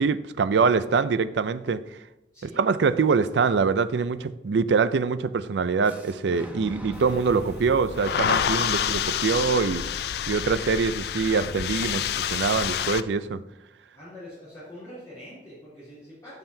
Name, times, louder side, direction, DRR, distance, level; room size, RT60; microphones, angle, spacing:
voice 1, 0.0-1.8 2.4-9.8 10.3-13.4, right 5 dB, 80° right, 14 dB, 0.4 m, -24 dB
voice 2, 2.3-2.7 13.9-16.4, left 1 dB, 20° left, -13 dB, 3.2 m, -44 dB
Fire / Explosion, 5.8-11.7, equal, 10° right, 0.8 m, -43 dB
sound 1, 6.9-13.0, left 8 dB, 65° left, 0.3 m, -28 dB
13.0 x 5.7 x 2.7 m, 0.92 s
head